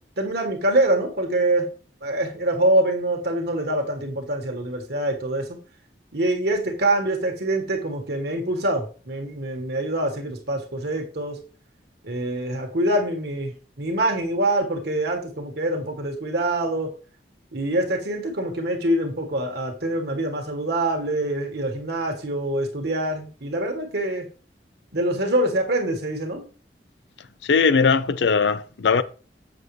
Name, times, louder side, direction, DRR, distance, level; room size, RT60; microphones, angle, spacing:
voice 1, 0.2-1.7 2.0-5.5 6.1-11.4 12.0-16.9 17.5-24.3 24.9-26.4, right 1 dB, 65° right, 1.6 m, -25 dB
voice 2, 27.4-29.0, left 5 dB, 75° left, 0.5 m, -19 dB
7.6 x 6.3 x 3.2 m
head